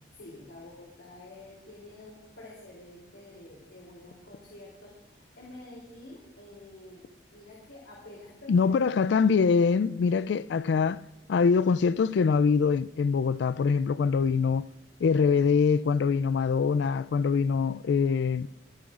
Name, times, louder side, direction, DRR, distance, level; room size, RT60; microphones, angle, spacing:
voice 1, 0.2-8.8, left 2 dB, 90° left, 3.2 m, -49 dB
voice 2, 8.5-11.0 11.3-14.7 15.0-18.5, left 5 dB, 70° left, 0.3 m, -24 dB
23.0 x 10.0 x 2.5 m
head